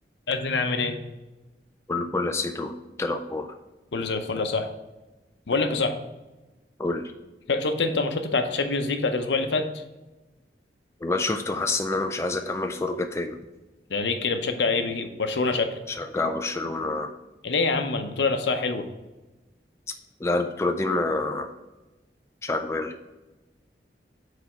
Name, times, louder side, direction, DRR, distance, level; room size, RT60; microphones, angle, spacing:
voice 1, 0.3-1.0 3.9-4.7 5.5-6.0 7.5-9.8 13.9-15.8 17.4-18.9, left 3 dB, 85° left, 6 dB, 0.7 m, -25 dB
voice 2, 1.9-2.7 3.0-3.5 6.8-7.1 11.0-13.4 15.9-17.1 20.2-21.5 22.4-22.9, left 2 dB, 15° left, 5 dB, 0.3 m, -27 dB
4.9 x 4.1 x 5.7 m, 1.1 s
head